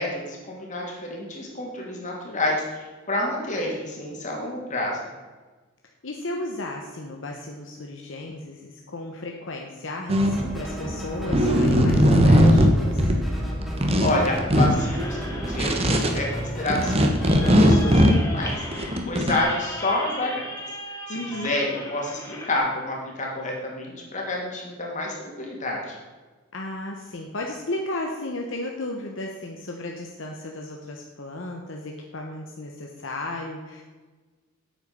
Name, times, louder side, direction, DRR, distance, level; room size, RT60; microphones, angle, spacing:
voice 1, 0.0-5.0 14.0-20.5 21.1-26.0, left 1 dB, 40° left, -1 dB, 2.8 m, -29 dB
voice 2, 6.0-13.0 21.1-21.5 26.5-33.8, left 1 dB, 65° left, 1 dB, 1.1 m, -34 dB
sound 1, 10.1-10.9 11.3-13.2 13.5-14.7 15.1-16.2 16.7-19.4, equal, 30° right, 1.3 m, -19 dB
sound 2, 10.2-18.0, right 1 dB, ahead, 2.3 m, -33 dB
sound 3, 14.7-22.6, left 2 dB, 15° left, 2.1 m, -38 dB
8.9 x 8.3 x 6.9 m, 1.3 s
head